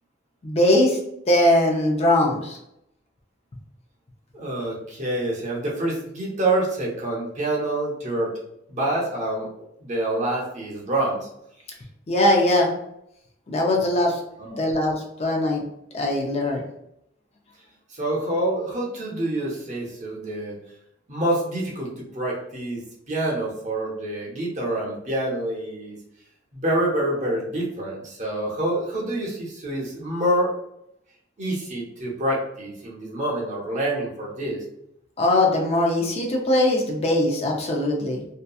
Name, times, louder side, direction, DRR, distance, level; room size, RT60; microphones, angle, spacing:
voice 1, 0.4-1.0 1.3-2.6 12.1-12.7 13.5-15.6 15.9-16.6 35.2-38.2, left 1 dB, 35° left, 0 dB, 0.4 m, -21 dB
voice 2, 4.3-8.3 8.7-9.5 9.8-11.3 14.4-14.6 17.9-20.6 21.1-26.0 26.5-30.6 31.4-34.6, right 1 dB, 40° right, -3 dB, 0.8 m, -27 dB
2.7 x 2.2 x 2.3 m, 0.77 s
head